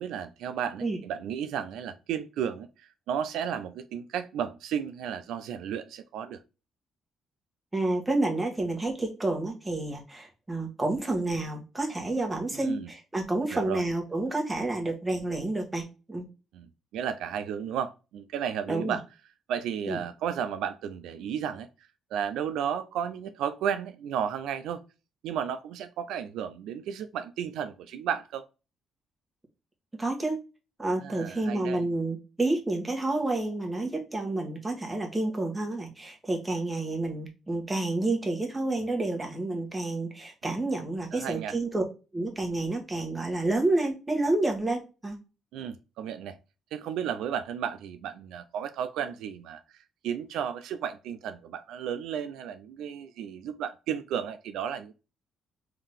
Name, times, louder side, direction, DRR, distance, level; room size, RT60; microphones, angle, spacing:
voice 1, 0.0-6.4 12.5-12.9 13.5-13.8 16.5-19.0 19.5-21.7 22.1-24.8 25.2-28.4 31.0-31.8 41.1-41.6 45.5-46.4 46.7-54.9, right 8 dB, 85° right, 0.3 m, -33 dB
voice 2, 7.7-16.2 18.7-18.9 19.9-20.0 30.0-30.4 30.8-41.8 42.1-45.1, right 2 dB, 15° right, 1.2 m, -29 dB
3.7 x 2.7 x 3.5 m
cardioid pair, 90°, 0 cm